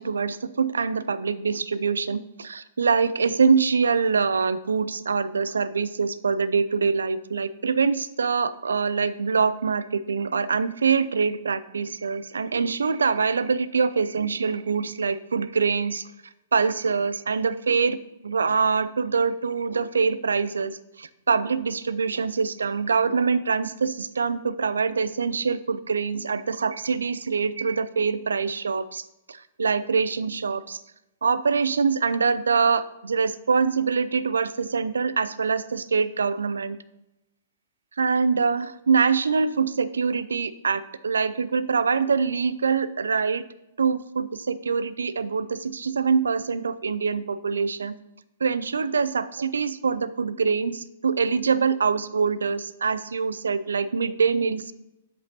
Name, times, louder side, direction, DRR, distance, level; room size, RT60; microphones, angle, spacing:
voice 1, 0.0-16.1 16.5-18.0 18.2-30.8 31.2-36.8 38.0-43.4 43.8-48.0 48.4-54.7, right 5 dB, 75° right, 15 dB, 0.4 m, -24 dB
8.7 x 7.7 x 2.9 m, 0.92 s
figure-of-eight pair, 110°, 0 cm